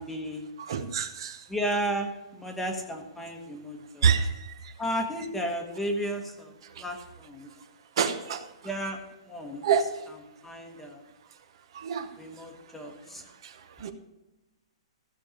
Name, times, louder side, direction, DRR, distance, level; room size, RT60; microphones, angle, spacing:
voice 1, 0.0-0.4 1.5-4.1 4.8-6.5 6.8-7.5 8.6-9.0 9.3-9.7 10.4-11.0 12.2-13.2, equal, 5° left, 2 dB, 1.1 m, -33 dB
voice 2, 0.6-1.8 4.0-4.7 6.6-6.8 8.0-8.5 9.6-10.1 11.7-12.2 13.4-13.9, right 7 dB, 50° right, 9 dB, 1.0 m, -28 dB
15.5 x 7.1 x 5.0 m, 1.0 s
hypercardioid pair, 170°, 3 cm